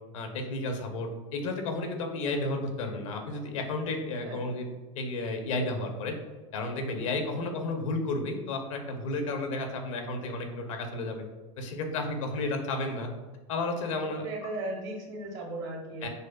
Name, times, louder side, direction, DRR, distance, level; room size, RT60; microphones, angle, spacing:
voice 1, 0.1-4.7 5.0-6.1 6.5-11.2 11.6-13.1 13.5-14.3 16.0-16.1, left 2 dB, 80° left, 4 dB, 0.6 m, -32 dB
voice 2, 7.3-7.7 14.2-16.1, right 2 dB, 60° right, 0 dB, 0.9 m, -37 dB
5.2 x 2.0 x 2.2 m, 1.3 s
hypercardioid pair, 90°, 16 cm